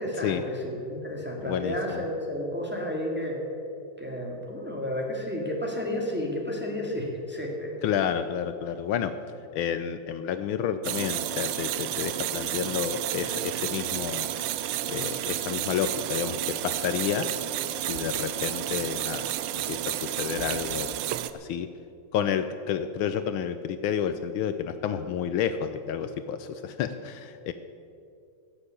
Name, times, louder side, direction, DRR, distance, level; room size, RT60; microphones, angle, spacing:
voice 1, 0.0-3.4 4.0-7.8, left 1 dB, 5° right, -1 dB, 2.0 m, -32 dB
voice 2, 1.4-2.0 7.8-9.1 9.5-14.3 14.9-17.3 17.9-19.3 19.5-20.9 21.4-21.7 22.1-27.5, left 8 dB, 75° left, 10 dB, 1.4 m, -30 dB
sound 1, 10.8-21.3, right 13 dB, 85° right, 1.5 m, -31 dB
16.5 x 7.2 x 8.3 m, 2.6 s
omnidirectional pair, 2.4 m